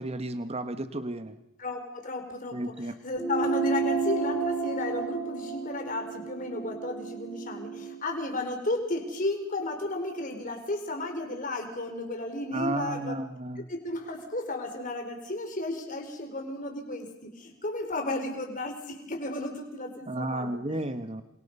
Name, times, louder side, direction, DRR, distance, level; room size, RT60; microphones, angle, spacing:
voice 1, 0.0-1.3 2.5-2.9 12.5-13.6 20.1-21.2, right 1 dB, 30° right, 10 dB, 1.3 m, -32 dB
voice 2, 1.6-13.2 13.6-20.8, left 2 dB, 40° left, 4 dB, 4.5 m, -34 dB
sound 1, 3.2-8.0, right 5 dB, ahead, 3.7 m, -31 dB
28.5 x 27.5 x 5.5 m, 0.94 s
head